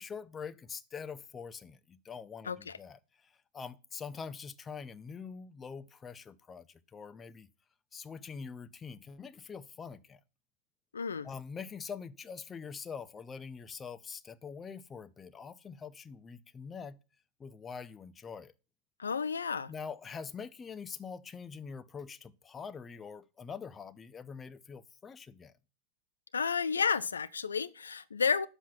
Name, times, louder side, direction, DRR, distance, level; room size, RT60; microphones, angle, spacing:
voice 1, 0.0-7.5 7.9-10.2 11.2-17.0 17.4-18.5 19.7-25.5, left 6 dB, 20° left, 0.7 m, -44 dB
voice 2, 2.5-2.8 10.9-11.3 19.0-19.7 26.3-28.5, left 6 dB, 70° left, 0.5 m, -31 dB
10.0 x 7.5 x 5.9 m
figure-of-eight pair, 90°, 0 cm